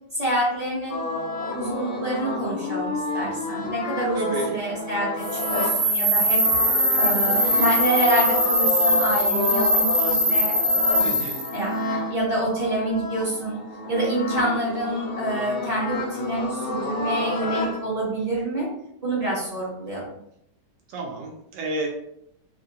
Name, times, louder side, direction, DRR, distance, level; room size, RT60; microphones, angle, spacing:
voice 1, 0.2-1.1 1.5-6.4 7.0-10.6 10.9-11.1 11.5-11.8 12.1-13.6 13.9-18.7 19.0-20.0, right 1 dB, 25° right, -6 dB, 0.9 m, -27 dB
sound 1, 0.9-17.8, left 2 dB, 85° left, 1.2 m, -29 dB
voice 2, 4.1-4.6 11.0-11.4 20.9-21.9, right 2 dB, 85° right, 0 dB, 1.4 m, -30 dB
sound 2, 5.2-11.5, equal, 45° right, 0.4 m, -21 dB
3.4 x 2.5 x 2.7 m, 0.75 s
omnidirectional pair, 1.8 m